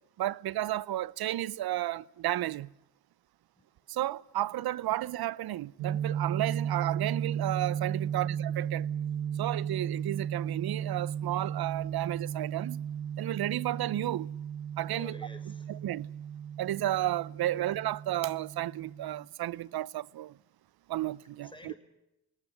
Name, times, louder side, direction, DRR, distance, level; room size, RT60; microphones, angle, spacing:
voice 1, 0.2-2.7 3.9-8.9 9.4-12.8 13.2-14.3 14.8-15.2 15.7-16.1 16.6-20.3 20.9-21.7, right 14 dB, 65° right, 0.7 m, -32 dB
sound 1, 5.8-19.2, right 8 dB, 80° right, 1.7 m, -35 dB
voice 2, 14.9-15.7 21.4-21.7, left 1 dB, 10° left, 6.2 m, -49 dB
28.0 x 19.5 x 6.5 m
hypercardioid pair, 40°, 40 cm